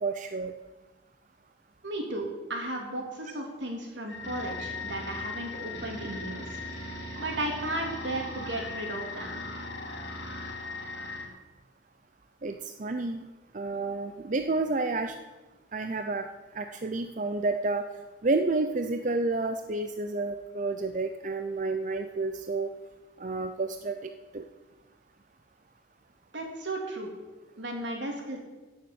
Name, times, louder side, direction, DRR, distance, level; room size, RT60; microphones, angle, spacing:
voice 1, 0.0-0.5 12.4-13.2 13.5-15.1 15.7-16.3 16.5-17.8 18.2-22.7 23.2-24.4, right 3 dB, 45° right, 7 dB, 0.6 m, -30 dB
voice 2, 1.8-6.5 7.2-9.4 26.3-27.1 27.6-28.4, right 1 dB, 80° right, 1 dB, 3.4 m, -34 dB
sound 1, 4.1-11.3, left 2 dB, 70° left, 2.5 m, -38 dB
15.5 x 7.3 x 8.1 m, 1.2 s
head